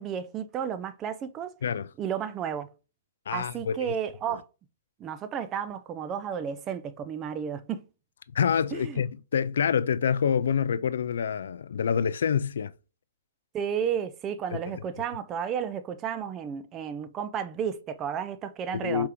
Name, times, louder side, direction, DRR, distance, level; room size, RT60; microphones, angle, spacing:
voice 1, 0.0-1.5 2.0-2.7 3.3-4.4 5.0-7.8 8.7-9.0 13.5-19.1, right 8 dB, 25° right, 0.4 m, -32 dB
voice 2, 3.3-3.9 8.3-12.7 18.7-19.1, left 7 dB, 70° left, 0.3 m, -27 dB
4.9 x 3.4 x 3.0 m
hypercardioid pair, 135°, 0 cm